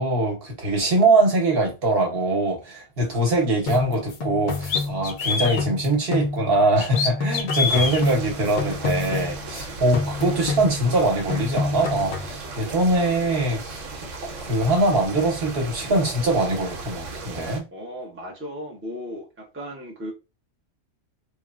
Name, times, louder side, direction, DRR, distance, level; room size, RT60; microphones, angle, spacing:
voice 1, 0.0-13.9 14.4-17.6, right 2 dB, 55° right, 1.0 m, -22 dB
sound 1, 3.7-6.7 6.9-9.6 9.9-11.0 11.3-12.4, left 4 dB, 65° left, 0.4 m, -29 dB
sound 2, 3.9-4.0 4.7-5.6 6.8-8.0, left 5 dB, 85° left, 0.9 m, -25 dB
sound 3, 7.6-17.6, right 3 dB, 85° right, 1.1 m, -36 dB
voice 2, 17.7-20.1, equal, 15° right, 0.4 m, -36 dB
3.1 x 2.0 x 2.3 m
omnidirectional pair, 1.3 m